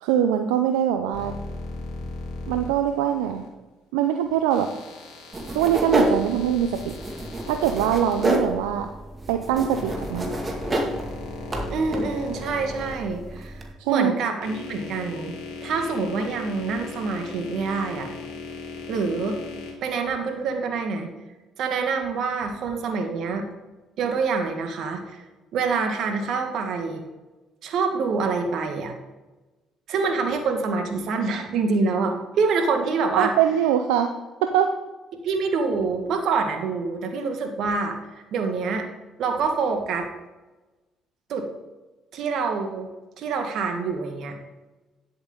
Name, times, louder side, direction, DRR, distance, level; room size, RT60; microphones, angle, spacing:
voice 1, 0.0-1.3 2.5-3.4 3.9-4.7 5.5-6.9 7.5-8.9 9.3-10.3 13.8-14.2 33.2-34.1 34.4-34.7, right 10 dB, 85° right, 6 dB, 0.6 m, -22 dB
sound 1, 1.1-3.5 4.5-8.3 9.3-13.6 14.2-19.7, left 3 dB, 85° left, 2.4 m, -38 dB
sound 2, 5.3-13.7, right 1 dB, 30° right, 2.2 m, -29 dB
voice 2, 11.7-15.3 15.6-18.1 18.9-19.4 19.8-21.1 21.6-23.5 24.0-25.2 25.5-27.0 27.6-28.9 29.9-33.3 35.2-38.0 38.3-38.9 39.2-40.1 41.3-41.5 42.1-42.9 43.2-44.4, right 4 dB, 70° right, 4 dB, 1.7 m, -26 dB
10.5 x 7.8 x 3.9 m, 1.2 s
hypercardioid pair, 60°, 0 cm